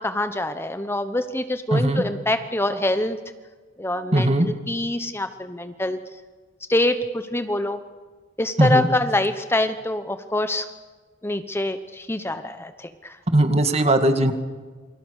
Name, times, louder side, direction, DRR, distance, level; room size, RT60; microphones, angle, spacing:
voice 1, 0.0-3.2 3.8-6.0 6.7-7.8 8.4-10.7 11.2-13.2, left 1 dB, 15° left, 9 dB, 0.9 m, -25 dB
voice 2, 1.7-2.0 4.1-4.5 8.6-8.9 13.3-14.3, right 1 dB, 35° right, 7 dB, 2.0 m, -19 dB
28.5 x 24.5 x 6.5 m, 1.4 s
head